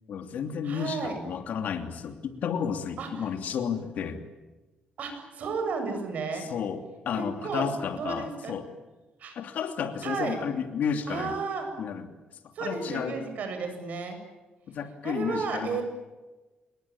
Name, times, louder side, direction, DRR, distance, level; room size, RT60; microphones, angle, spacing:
voice 1, 0.1-4.2 6.5-8.7 9.4-11.4 11.8-12.1 12.6-13.2 14.7-15.8, left 7 dB, 65° left, 7 dB, 2.9 m, -32 dB
voice 2, 0.6-1.2 3.0-3.3 5.0-6.5 7.1-7.7 8.0-8.6 9.2-9.3 10.0-10.4 11.1-11.7 12.5-14.2 15.0-15.8, right 4 dB, 60° right, 6 dB, 7.8 m, -33 dB
27.5 x 22.5 x 8.9 m, 1.1 s
cardioid pair, 160°, 3 cm